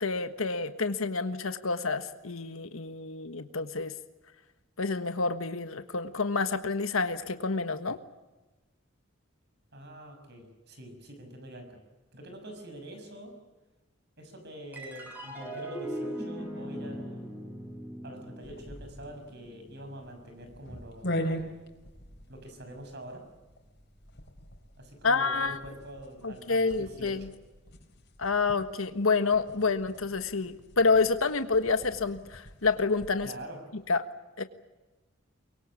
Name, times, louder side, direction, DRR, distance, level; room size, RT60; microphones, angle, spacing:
voice 1, 0.0-3.9 4.8-8.0 25.0-25.6 26.2-27.2 28.2-33.3 33.9-34.0 34.4-34.5, left 4 dB, 90° left, 9 dB, 1.4 m, -28 dB
voice 2, 9.7-11.8 12.1-13.4 14.2-17.3 18.0-21.2 22.3-23.3 24.8-27.3 33.2-33.6, right 1 dB, 55° right, 6 dB, 6.2 m, -45 dB
sound 1, 14.7-21.4, right 1 dB, 10° right, 6.9 m, -40 dB
sound 2, 18.4-33.3, equal, 55° left, 4.6 m, -42 dB
24.0 x 23.5 x 8.6 m, 1.1 s
head